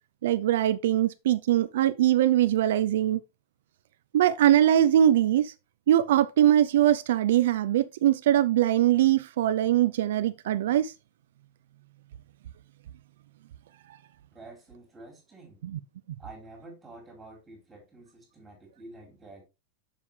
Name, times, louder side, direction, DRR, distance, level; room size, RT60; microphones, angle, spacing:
voice 1, 0.2-3.2 4.1-5.5 5.9-10.9 15.7-15.8, right 12 dB, 80° right, 0.5 m, -22 dB
voice 2, 14.3-15.6 16.2-19.4, right 2 dB, 10° right, 4.2 m, -48 dB
7.3 x 6.7 x 3.3 m
supercardioid pair, 165°, 0 cm